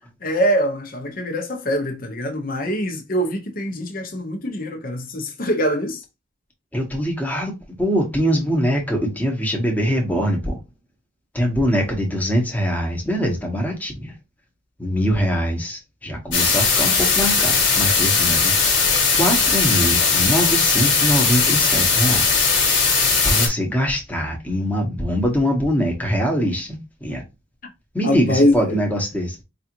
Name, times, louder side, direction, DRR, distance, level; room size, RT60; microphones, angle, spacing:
voice 1, 0.2-6.0 28.0-28.8, equal, 45° left, 0.9 m, -23 dB
voice 2, 6.7-10.6 11.3-14.1 14.8-22.5 23.2-27.2 27.9-29.4, equal, 10° left, 1.0 m, -23 dB
sound 1, 16.3-23.5, left 4 dB, 65° left, 1.5 m, -18 dB
4.8 x 2.5 x 2.9 m
head